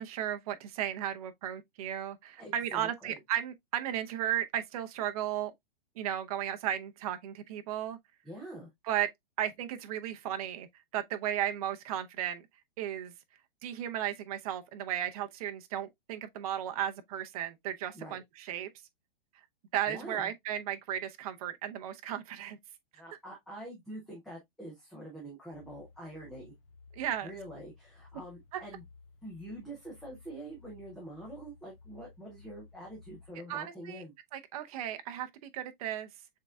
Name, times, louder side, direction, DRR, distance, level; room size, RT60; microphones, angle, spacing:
voice 1, 0.0-5.5 6.0-8.0 8.8-9.1 9.4-10.7 10.9-12.5 12.8-13.1 13.6-18.7 19.7-22.6 26.9-27.3 28.5-28.6 33.5-34.0 34.3-36.1, right 11 dB, 40° right, 0.6 m, -35 dB
voice 2, 2.4-3.2 8.2-8.7 17.9-18.2 19.9-20.3 22.9-26.5 27.2-28.8 29.2-34.1, right 1 dB, ahead, 0.4 m, -45 dB
sound 1, 25.5-33.3, left 4 dB, 30° left, 0.7 m, -56 dB
6.5 x 3.6 x 2.2 m
hypercardioid pair, 160°, 30 cm